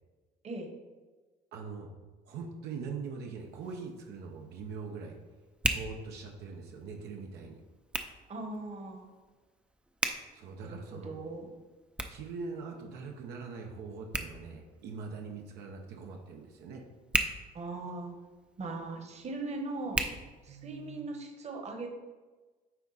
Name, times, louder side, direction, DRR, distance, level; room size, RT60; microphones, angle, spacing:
voice 1, 1.5-1.9 2.3-5.2 5.6-7.6 10.3-11.1 12.1-16.8 20.5-21.1, right 5 dB, 80° right, 1 dB, 0.9 m, -42 dB
Hands, 3.4-21.0, right 1 dB, 5° right, 0.5 m, -40 dB
voice 2, 8.3-9.1 10.6-11.5 17.5-18.2 18.6-20.0 20.4-21.9, right 2 dB, 40° right, 3 dB, 1.2 m, -39 dB
9.1 x 3.6 x 4.1 m, 1.3 s
cardioid pair, 110°, 17 cm